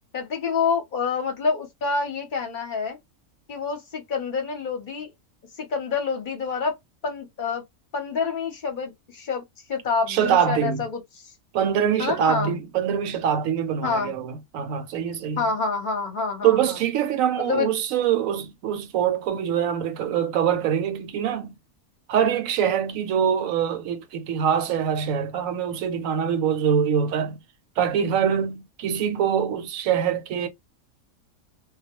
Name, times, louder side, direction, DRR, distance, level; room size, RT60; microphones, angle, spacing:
voice 1, 0.1-3.0 3.5-5.1 5.6-6.8 7.0-7.6 7.9-9.4 9.7-11.3 12.0-12.5 13.8-14.2 15.4-16.8 17.5-17.7, left 5 dB, 45° left, 0.8 m, -27 dB
voice 2, 10.1-10.8 11.5-15.5 16.4-21.5 22.1-27.4 27.8-30.5, right 8 dB, 75° right, 0.9 m, -24 dB
2.3 x 2.2 x 2.8 m
omnidirectional pair, 1.5 m